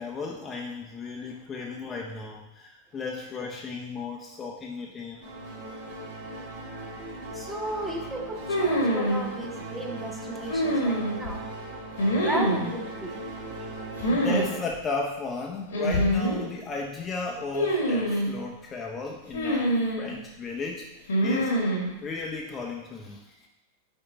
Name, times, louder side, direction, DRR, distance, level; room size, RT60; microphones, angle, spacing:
voice 1, 0.0-5.2 14.1-20.9 21.2-21.6 22.0-23.5, left 4 dB, 25° left, 0 dB, 0.6 m, -35 dB
sound 1, 5.2-14.6, right 1 dB, 50° right, 1.6 m, -39 dB
voice 2, 6.3-13.9, right 1 dB, 5° right, 1 dB, 0.9 m, -36 dB
sound 2, 8.5-9.2 10.5-11.3 12.0-12.7 14.0-14.5 14.7-14.8 15.7-16.4 17.5-18.3 19.3-20.1 21.1-21.8, equal, 65° left, 1.5 m, -25 dB
5.4 x 4.7 x 3.9 m, 0.99 s
figure-of-eight pair, 90°, 0 cm